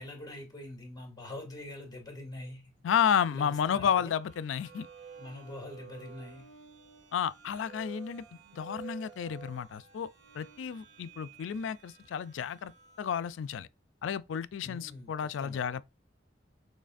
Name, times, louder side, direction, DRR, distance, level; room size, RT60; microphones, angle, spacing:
voice 1, 0.0-2.7 3.1-4.1 5.2-6.5 14.6-15.6, left 1 dB, 20° left, 2.0 m, -44 dB
voice 2, 2.8-4.9 7.1-10.1 10.3-12.7 13.0-13.7 14.0-15.8, left 8 dB, 90° left, 0.3 m, -31 dB
sound 1, 3.3-13.5, right 6 dB, 80° right, 1.8 m, -52 dB
6.4 x 3.2 x 2.5 m
head